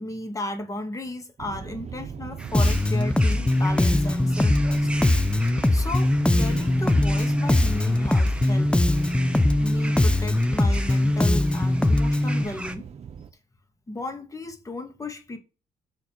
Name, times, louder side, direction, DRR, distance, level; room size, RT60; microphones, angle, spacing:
voice 1, 0.0-4.9 5.7-8.7 9.6-12.9 13.9-15.4, left 1 dB, 25° left, 2.0 m, -35 dB
sound 1, 1.4-13.3, right 7 dB, 55° right, 0.8 m, -38 dB
sound 2, 2.4-12.8, right 2 dB, 10° right, 1.1 m, -40 dB
Bass guitar, 2.5-12.4, left 1 dB, 10° left, 0.5 m, -21 dB
7.5 x 4.2 x 4.5 m
cardioid pair, 70°, 13 cm